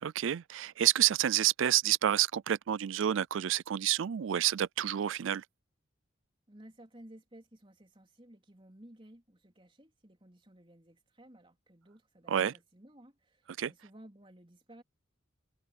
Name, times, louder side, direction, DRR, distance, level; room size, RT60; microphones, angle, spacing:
voice 1, 0.0-5.4 12.3-12.5 13.6-13.7, right 11 dB, 75° right, 0.4 m, -29 dB
voice 2, 6.5-14.8, right 1 dB, 25° right, 3.6 m, -56 dB
head